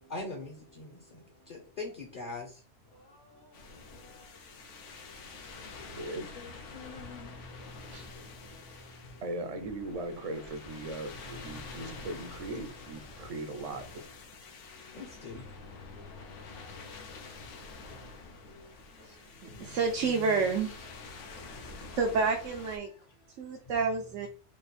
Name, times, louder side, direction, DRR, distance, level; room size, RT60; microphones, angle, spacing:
voice 1, 0.1-2.6 5.9-7.4 14.9-15.4 19.4-20.6, left 3 dB, 45° left, 0.9 m, -43 dB
voice 2, 0.8-1.8 2.9-9.2 10.2-10.6 11.1-12.1 13.1-20.3 20.9-22.0 22.7-23.8 24.2-24.3, left 3 dB, 60° left, 1.3 m, -55 dB
sound 1, 3.5-22.8, left 3 dB, 75° left, 1.0 m, -48 dB
voice 3, 6.0-6.4 9.2-13.8, right 2 dB, 40° right, 0.5 m, -38 dB
voice 4, 19.4-20.8 22.0-22.9 23.4-24.3, right 4 dB, 85° right, 1.0 m, -29 dB
3.7 x 2.4 x 4.1 m
omnidirectional pair, 1.3 m